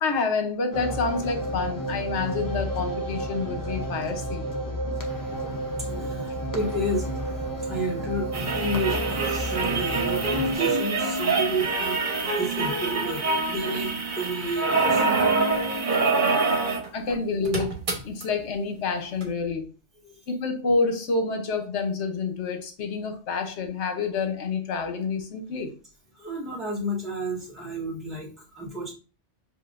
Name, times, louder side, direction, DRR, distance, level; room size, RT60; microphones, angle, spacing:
voice 1, 0.0-4.5 16.9-19.7 20.3-25.7, left 4 dB, 65° left, 1.1 m, -28 dB
sound 1, 0.7-10.6, right 1 dB, 25° left, 0.5 m, -31 dB
voice 2, 5.8-7.1 7.6-15.1 15.4-15.7 17.1-17.2 20.0-20.2 26.1-28.9, right 1 dB, ahead, 1.4 m, -31 dB
sound 2, 8.3-16.9 17.2-17.3 17.4-18.2 19.2-19.3, right 3 dB, 45° right, 1.2 m, -25 dB
7.1 x 2.5 x 2.5 m
omnidirectional pair, 1.3 m